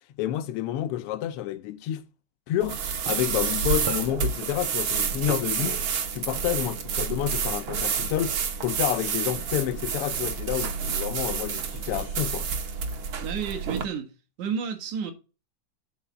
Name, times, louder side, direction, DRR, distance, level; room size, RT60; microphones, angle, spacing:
voice 1, 0.2-2.0 2.5-2.8 3.1-5.8 6.1-12.5, left 12 dB, 80° left, 1.4 m, -29 dB
sound 1, 2.6-13.8, right 6 dB, 60° right, 1.5 m, -29 dB
voice 2, 13.2-14.1 14.4-15.1, right 7 dB, 75° right, 2.6 m, -31 dB
9.5 x 4.0 x 5.8 m
omnidirectional pair, 3.4 m